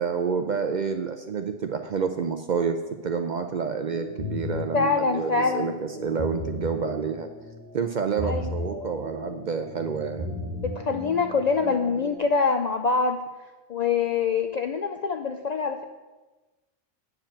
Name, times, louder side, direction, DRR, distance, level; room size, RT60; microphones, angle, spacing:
voice 1, 0.0-7.3 7.7-10.3, right 6 dB, 55° right, 6 dB, 0.5 m, -29 dB
sound 1, 3.9-12.2, right 1 dB, 15° left, 1.4 m, -41 dB
sound 2, 4.2-4.7 6.1-6.7 8.2-8.7 10.1-10.7, left 2 dB, 40° right, 1.2 m, -32 dB
voice 2, 4.7-5.8 8.2-8.5 10.6-13.2 13.7-15.8, left 4 dB, 60° left, 5 dB, 0.4 m, -25 dB
8.8 x 5.0 x 7.3 m, 1.2 s
omnidirectional pair, 1.2 m